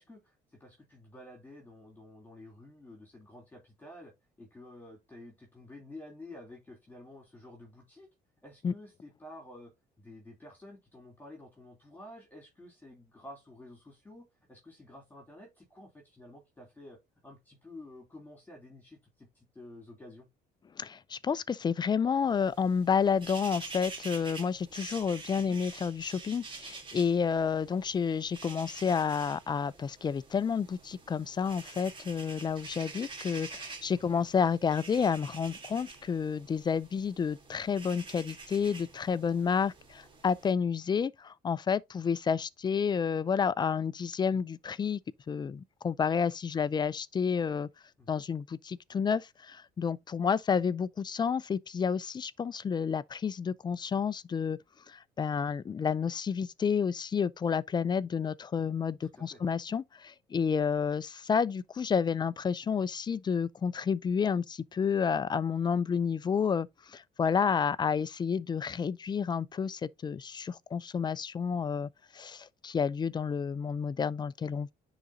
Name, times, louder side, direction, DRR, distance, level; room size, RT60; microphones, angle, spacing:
voice 1, 0.0-4.1 4.4-8.1 8.4-9.7 10.0-17.0 17.2-20.3 25.3-25.6 34.1-34.2 48.0-48.2 59.0-59.4, left 1 dB, 10° left, 2.9 m, -51 dB
voice 2, 20.8-45.0 45.3-47.7 48.1-54.6 54.9-74.7, left 6 dB, 25° left, 0.4 m, -30 dB
sound 1, 22.2-40.5, right 3 dB, 30° right, 3.1 m, -47 dB
10.0 x 4.0 x 2.6 m
cardioid pair, 110°, 17 cm